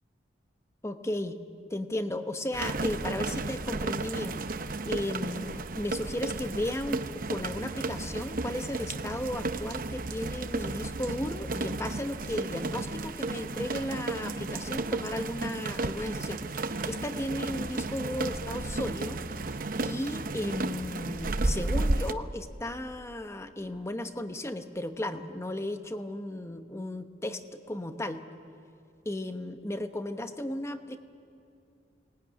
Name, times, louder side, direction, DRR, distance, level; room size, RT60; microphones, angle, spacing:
voice 1, 0.8-1.4 1.7-4.4 4.8-7.0 7.3-19.2 19.8-28.2 29.0-31.0, left 1 dB, 15° left, 8 dB, 1.0 m, -35 dB
sound 1, 2.5-22.1, right 2 dB, 55° right, 0.8 m, -33 dB
24.0 x 19.5 x 9.6 m, 2.5 s
head